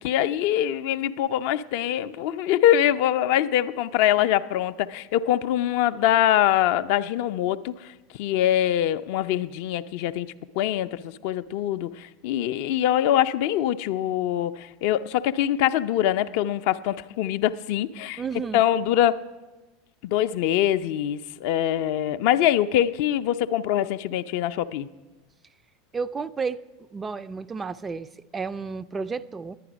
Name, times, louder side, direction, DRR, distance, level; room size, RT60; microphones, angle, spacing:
voice 1, 0.0-7.9 8.2-18.2 18.5-19.2 20.0-24.9, left 11 dB, 55° left, 0.4 m, -23 dB
voice 2, 18.2-18.6 25.9-26.6 26.9-29.6, right 5 dB, 20° right, 0.3 m, -32 dB
11.0 x 9.7 x 5.0 m
figure-of-eight pair, 80°, 0 cm